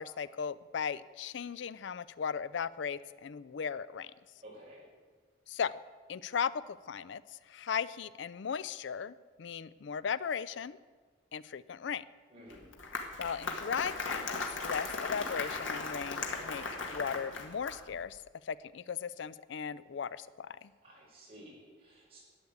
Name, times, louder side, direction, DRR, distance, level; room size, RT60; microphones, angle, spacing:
voice 1, 0.0-4.1 5.5-5.8 6.1-7.2 7.5-10.8 11.3-12.0 13.2-16.6 16.9-20.7, left 7 dB, 70° left, 18 dB, 0.4 m, -37 dB
voice 2, 4.4-4.9 12.3-12.7 20.8-22.2, equal, 30° right, -5 dB, 5.8 m, -53 dB
Applause, 12.5-18.0, left 3 dB, 90° left, 2.0 m, -37 dB
12.5 x 9.5 x 8.5 m, 1.5 s
head